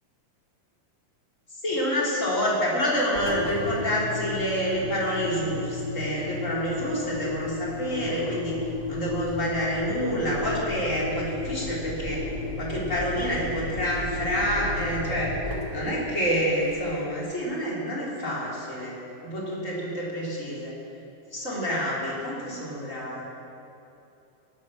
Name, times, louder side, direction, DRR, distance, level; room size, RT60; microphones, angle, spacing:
voice 1, 1.6-8.6 8.9-12.3 12.6-15.3 15.7-19.0 19.2-20.7 21.3-23.2, equal, 20° left, -5 dB, 3.7 m, -28 dB
Engine, 3.1-17.1, left 3 dB, 30° right, 1.4 m, -33 dB
17.0 x 12.5 x 6.3 m, 2.7 s
omnidirectional pair, 4.0 m